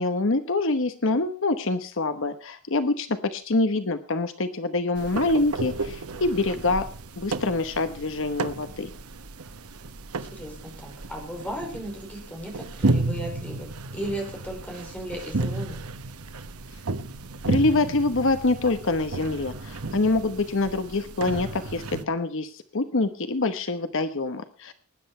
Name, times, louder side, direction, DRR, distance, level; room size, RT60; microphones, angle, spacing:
voice 1, 0.0-6.9 7.2-8.9 17.5-24.7, left 2 dB, 60° left, 10 dB, 1.0 m, -25 dB
sound 1, 5.0-22.0, right 2 dB, 90° right, 1.2 m, -33 dB
voice 2, 10.3-15.8, equal, 5° left, 1 dB, 5.1 m, -36 dB
19.5 x 10.5 x 4.3 m, 0.40 s
head